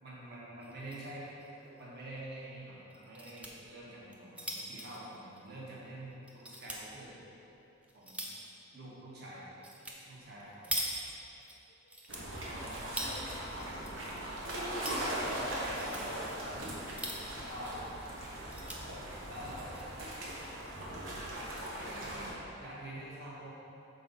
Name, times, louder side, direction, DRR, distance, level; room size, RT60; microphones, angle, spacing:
voice 1, 0.0-1.3 1.7-7.1 7.9-8.3 8.7-9.5 10.1-10.7 12.3-12.8 15.3-16.2 17.3-17.8 19.3-19.9 21.7-23.5, right 1 dB, 55° right, -7 dB, 1.5 m, -47 dB
voice 2, 0.5-0.9 9.3-9.5 9.8-9.9 10.4-11.0 11.8-11.9 12.2-12.8 19.0-19.4 21.5-21.7, left 3 dB, 80° left, 2 dB, 0.6 m, -60 dB
sound 1, 0.6-1.1 1.4-1.5 1.8-1.9 2.9-3.5 4.0-5.9 6.3-6.8 7.4-8.5 9.6-10.0 10.2-11.5 11.9-13.2 13.6-14.2 14.5-15.0 15.6-16.0 16.8-17.5 17.9-18.0 18.3-18.8 19.5-19.8, right 1 dB, 5° right, 0.5 m, -41 dB
sound 2, 12.1-22.3, right 1 dB, 75° right, 1.1 m, -39 dB
5.7 x 3.9 x 5.4 m, 3.0 s
head